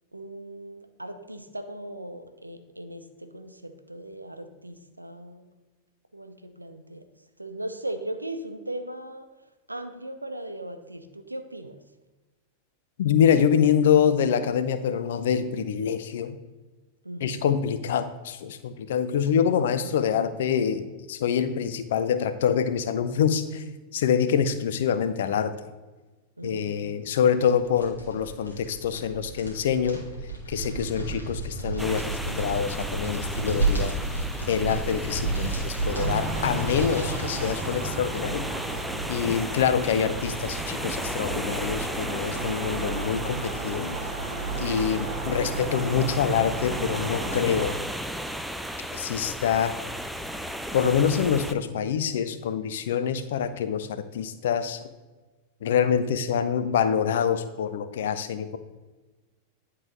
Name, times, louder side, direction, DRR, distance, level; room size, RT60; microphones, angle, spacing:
voice 1, 0.1-5.5 6.1-7.0 7.4-9.3 9.7-11.8 17.0-17.5 26.4-26.9, right 1 dB, 85° right, 7 dB, 0.5 m, -38 dB
voice 2, 13.0-16.4 17.2-23.6 23.9-25.5 26.4-30.0 30.5-33.9 34.5-38.5 39.1-44.0 44.6-47.7 48.9-49.7 50.7-54.8 55.6-58.6, left 8 dB, 60° left, 11 dB, 0.5 m, -25 dB
sound 1, 27.3-38.0, right 3 dB, 80° left, 1.6 m, -32 dB
sound 2, 31.8-51.5, equal, ahead, 0.4 m, -35 dB
sound 3, 35.9-47.8, right 3 dB, 25° right, 1.2 m, -34 dB
10.5 x 3.8 x 3.1 m, 1.2 s
figure-of-eight pair, 90°, 0 cm